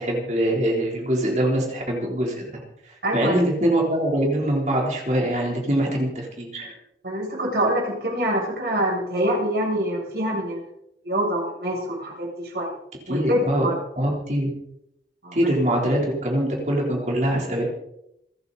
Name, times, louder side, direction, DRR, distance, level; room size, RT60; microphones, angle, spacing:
voice 1, 0.0-2.4 2.9-6.7 13.1-13.7 14.0-14.5 15.3-17.7, right 1 dB, 40° right, -1 dB, 3.8 m, -23 dB
voice 2, 3.0-3.4 7.0-10.6 11.0-12.7 13.1-13.7 15.2-15.4, equal, 70° right, -3 dB, 7.8 m, -25 dB
28.5 x 9.5 x 4.2 m, 0.78 s
head